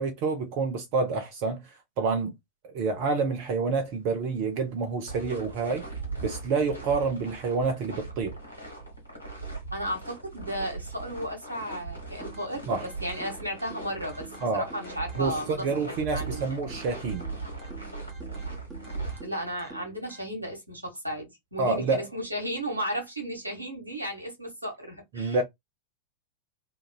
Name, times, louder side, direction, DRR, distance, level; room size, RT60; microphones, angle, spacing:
voice 1, 0.0-2.3 2.6-5.8 6.2-8.4 12.7-12.9 14.4-14.7 15.2-17.2 21.6-22.1 25.1-25.4, right 4 dB, 45° right, 0.6 m, -28 dB
sound 1, 3.0-19.2, right 3 dB, 85° left, 1.3 m, -40 dB
voice 2, 9.7-15.7 16.0-16.5 19.2-25.4, equal, 85° right, 1.2 m, -34 dB
sound 2, 12.2-20.2, right 3 dB, 15° right, 1.2 m, -48 dB
3.0 x 2.4 x 2.3 m
figure-of-eight pair, 90°, 0 cm